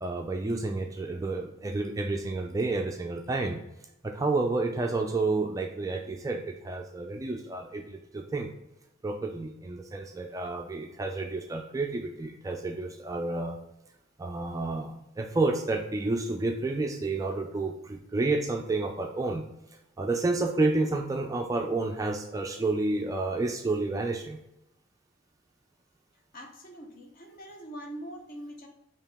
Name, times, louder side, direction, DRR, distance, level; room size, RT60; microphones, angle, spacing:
voice 1, 0.0-3.6 4.0-8.5 9.0-13.6 14.2-19.5 20.0-24.4, right 3 dB, 15° right, 2 dB, 0.3 m, -30 dB
voice 2, 26.3-28.7, right 1 dB, 40° left, 2 dB, 0.8 m, -43 dB
4.7 x 3.0 x 3.4 m, 0.87 s
head